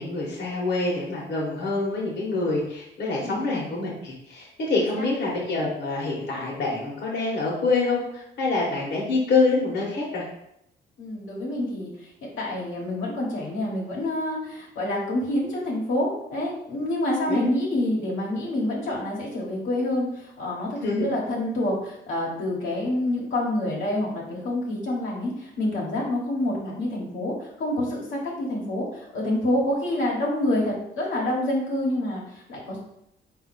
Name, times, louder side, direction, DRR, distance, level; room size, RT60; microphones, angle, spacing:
voice 1, 0.0-10.2 17.3-17.4 20.8-21.1, left 3 dB, 60° left, -4 dB, 1.3 m, -26 dB
voice 2, 11.0-32.8, left 1 dB, 75° left, -3 dB, 1.3 m, -27 dB
4.1 x 2.7 x 4.1 m, 0.78 s
cardioid pair, 90°, 20 cm